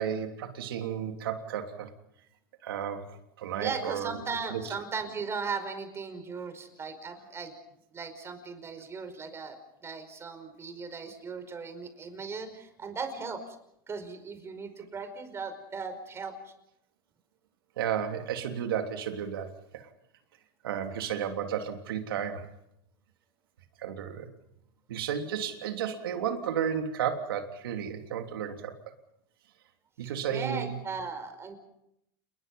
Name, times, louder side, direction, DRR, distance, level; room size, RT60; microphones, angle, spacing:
voice 1, 0.0-1.9 2.6-4.1 4.5-4.6 17.8-19.9 20.6-22.5 23.8-24.3 24.9-28.7 30.0-30.8, right 8 dB, 90° right, 5 dB, 3.3 m, -33 dB
voice 2, 3.5-7.5 7.9-9.6 9.8-13.4 13.9-16.3 30.0-31.6, right 5 dB, 20° right, 9 dB, 5.2 m, -37 dB
29.5 x 21.0 x 5.5 m, 0.77 s
supercardioid pair, 120°, 12 cm